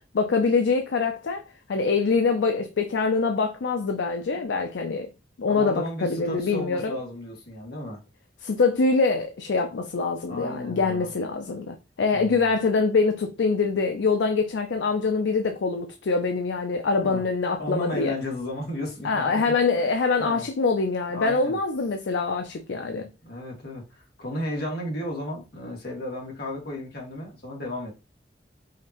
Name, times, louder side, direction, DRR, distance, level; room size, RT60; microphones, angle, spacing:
voice 1, 0.1-1.4 1.7-5.1 5.4-7.0 8.4-18.1 19.0-23.1, left 4 dB, 85° left, 0.5 m, -24 dB
voice 2, 5.5-8.0 10.3-11.1 12.1-12.5 17.0-17.2 17.6-19.9 20.2-20.5 21.1-21.6 22.9-27.9, left 1 dB, 60° left, 1.8 m, -34 dB
4.9 x 2.6 x 2.9 m
head